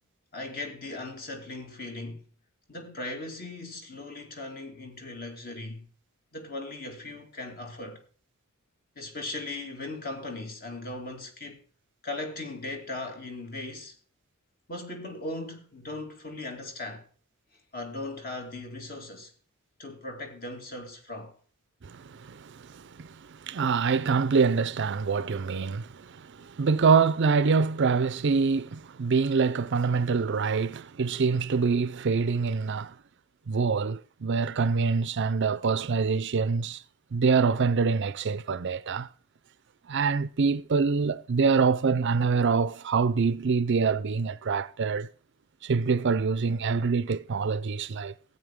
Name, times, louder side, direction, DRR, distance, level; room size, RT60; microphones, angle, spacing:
voice 1, 0.3-2.3 2.7-5.9 6.3-8.0 9.0-11.6 12.0-13.9 14.7-17.0 17.7-19.3 19.8-21.3, left 2 dB, 40° left, 2.5 m, -38 dB
voice 2, 21.8-23.1 23.5-32.9 33.5-36.8 37.1-39.1 39.9-45.1 45.6-48.1, right 5 dB, 55° right, 0.5 m, -25 dB
15.5 x 8.7 x 3.6 m
head